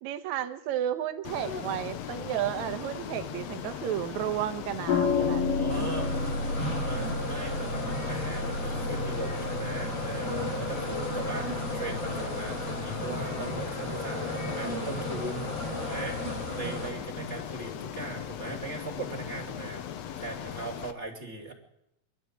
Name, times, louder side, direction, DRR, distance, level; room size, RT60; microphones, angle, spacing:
voice 1, 0.0-5.4 11.0-11.1 15.6-16.0 16.6-16.9 17.2-17.4, right 11 dB, 70° right, 8 dB, 1.9 m, -33 dB
Ocean, 1.2-20.9, left 9 dB, 80° left, 1.5 m, -39 dB
sound 1, 4.9-13.4, left 4 dB, 60° left, 4.6 m, -32 dB
voice 2, 5.1-6.4 6.8-19.9 20.2-21.5, right 3 dB, 20° right, 1 dB, 2.8 m, -39 dB
sound 2, 5.7-16.9, left 1 dB, 40° left, 4.9 m, -35 dB
23.5 x 12.5 x 8.8 m, 0.84 s
omnidirectional pair, 4.5 m